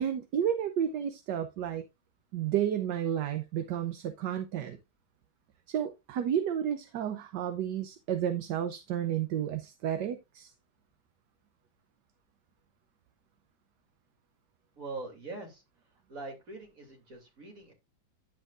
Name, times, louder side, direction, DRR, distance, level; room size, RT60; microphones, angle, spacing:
voice 1, 0.0-1.8 2.3-4.8 5.7-10.5, right 9 dB, 65° right, 1.3 m, -31 dB
voice 2, 14.8-15.6 16.1-17.7, right 3 dB, 45° right, 3.0 m, -42 dB
10.0 x 7.3 x 2.5 m
omnidirectional pair, 2.2 m